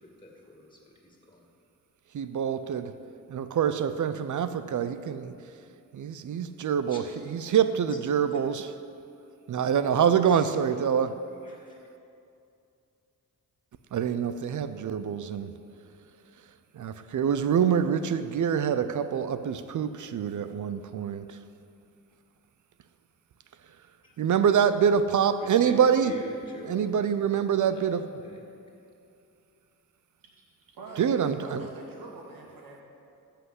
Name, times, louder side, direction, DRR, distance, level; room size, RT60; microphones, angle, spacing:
voice 1, 0.0-1.5 6.9-7.5 7.9-8.0 10.3-11.1 11.4-11.8 24.0-24.2 25.4-27.4 27.7-27.9 28.2-28.4, left 1 dB, 15° left, 0 dB, 2.3 m, -47 dB
voice 2, 2.1-2.9 3.3-5.3 5.9-7.0 7.3-8.6 9.5-11.2 13.9-15.5 16.8-21.3 24.2-26.1 26.7-28.1 31.0-31.6, right 8 dB, 60° right, 12 dB, 0.6 m, -25 dB
voice 3, 30.7-32.8, right 2 dB, 85° right, -1 dB, 2.3 m, -43 dB
14.0 x 5.7 x 8.0 m, 2.6 s
cardioid pair, 85°, 34 cm